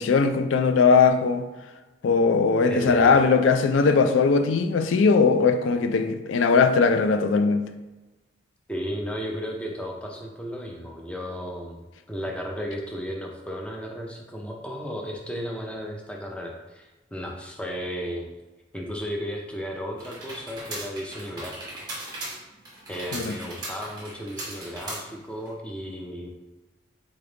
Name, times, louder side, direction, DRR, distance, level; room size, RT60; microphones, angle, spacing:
voice 1, 0.0-1.4 2.0-7.6 23.1-23.3, left 4 dB, 85° left, 9 dB, 0.4 m, -20 dB
voice 2, 2.7-3.1 8.7-18.3 18.7-21.9 22.9-26.3, equal, 5° left, 0 dB, 0.5 m, -34 dB
sound 1, 20.0-25.5, right 1 dB, 20° right, 1.1 m, -38 dB
3.9 x 3.5 x 3.8 m, 1.1 s
head